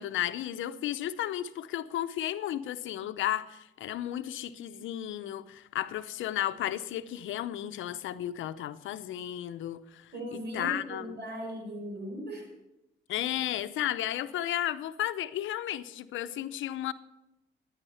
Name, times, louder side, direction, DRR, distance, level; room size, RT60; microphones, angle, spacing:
voice 1, 0.0-11.2 13.1-16.9, left 12 dB, 80° left, 11 dB, 0.7 m, -33 dB
voice 2, 10.1-12.5, right 1 dB, 60° right, 2 dB, 5.2 m, -38 dB
13.0 x 9.8 x 5.7 m, 0.93 s
cardioid pair, 90°, 20 cm